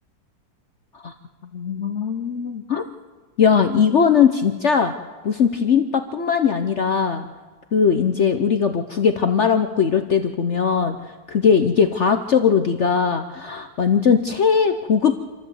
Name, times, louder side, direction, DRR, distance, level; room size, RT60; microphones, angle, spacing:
voice 1, 1.5-2.8 3.4-4.9 5.2-7.3 7.7-15.2, left 6 dB, 60° left, 7 dB, 0.7 m, -19 dB
27.0 x 13.0 x 8.0 m, 1.4 s
omnidirectional pair, 2.1 m